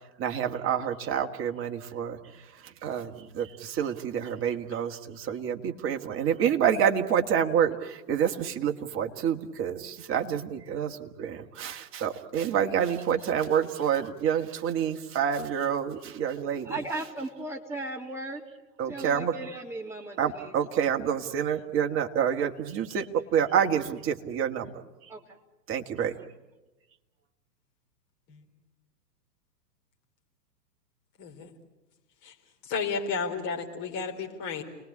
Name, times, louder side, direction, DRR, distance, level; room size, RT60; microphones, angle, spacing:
voice 1, 0.2-16.8 18.8-19.3 20.2-24.7 25.7-26.2, right 8 dB, 25° right, 5 dB, 1.8 m, -28 dB
voice 2, 16.6-18.4 18.9-20.5 25.1-25.4, right 2 dB, 5° right, -1 dB, 3.1 m, -36 dB
voice 3, 31.2-31.5 32.2-32.3 32.6-34.6, left 5 dB, 35° left, 2 dB, 4.1 m, -32 dB
30.0 x 20.0 x 8.6 m, 1.1 s
hypercardioid pair, 125°, 48 cm